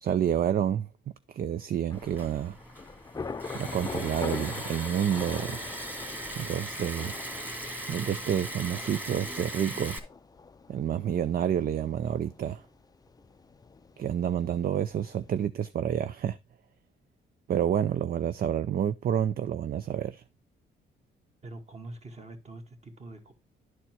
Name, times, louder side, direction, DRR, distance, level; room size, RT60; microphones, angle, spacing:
voice 1, 0.0-0.9 1.3-2.6 3.5-5.7 6.4-7.2 7.9-10.0 10.7-12.6 14.0-16.4 17.5-20.2, right 9 dB, 50° right, 0.5 m, -29 dB
Thunder / Rain, 1.9-15.5, left 4 dB, 20° left, 0.5 m, -43 dB
Liquid, 1.9-10.0, right 1 dB, 10° right, 1.8 m, -39 dB
voice 2, 21.4-23.3, right 2 dB, 35° right, 2.0 m, -44 dB
11.0 x 4.3 x 4.4 m
cardioid pair, 90°, 20 cm